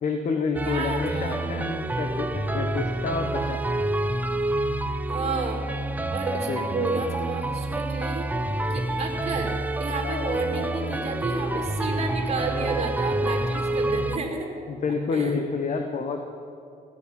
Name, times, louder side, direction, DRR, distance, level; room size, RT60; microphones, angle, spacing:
voice 1, 0.0-3.6 6.5-6.9 14.7-16.2, left 4 dB, 45° left, 5 dB, 1.1 m, -28 dB
sound 1, 0.5-14.2, right 1 dB, 10° right, 0.6 m, -28 dB
voice 2, 0.6-1.5 5.1-5.6 6.1-8.3 8.7-14.5 15.1-15.4, right 3 dB, 35° right, 2 dB, 2.3 m, -31 dB
sound 2, 4.6-4.7 6.3-7.2 10.0-11.7, left 6 dB, 65° left, 1.1 m, -39 dB
16.5 x 6.1 x 10.0 m, 2.4 s
cardioid pair, 110°, 17 cm